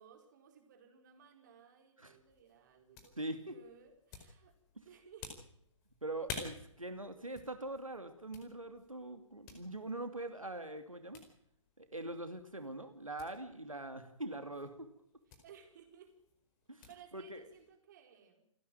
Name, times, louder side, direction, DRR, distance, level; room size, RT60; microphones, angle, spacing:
voice 1, 0.0-3.1 3.5-4.5 4.8-5.3 15.3-16.1 16.9-18.4, right 8 dB, 35° right, 4 dB, 4.5 m, -59 dB
sound 1, 2.1-17.8, left 5 dB, 20° left, 4.5 m, -53 dB
voice 2, 3.2-3.6 4.8-4.9 6.0-11.2 11.8-14.9 16.7-17.4, right 2 dB, 85° right, 7 dB, 2.7 m, -43 dB
29.0 x 10.5 x 9.1 m, 0.75 s
figure-of-eight pair, 135°, 17 cm